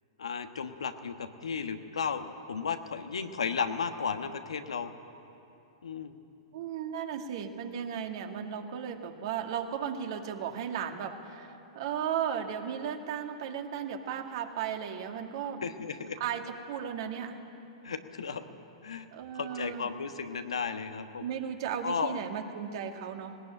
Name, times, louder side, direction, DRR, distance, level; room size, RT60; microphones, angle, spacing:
voice 1, 0.2-4.9 5.8-6.1 15.6-16.2 17.8-18.4 18.8-19.1 19.3-21.2 21.8-22.2, left 6 dB, 75° left, 8 dB, 1.3 m, -34 dB
voice 2, 6.5-15.6 16.2-17.4 19.1-19.9 21.2-23.4, right 8 dB, 55° right, 4 dB, 2.1 m, -35 dB
19.0 x 19.0 x 8.9 m, 2.9 s
figure-of-eight pair, 105°, 3 cm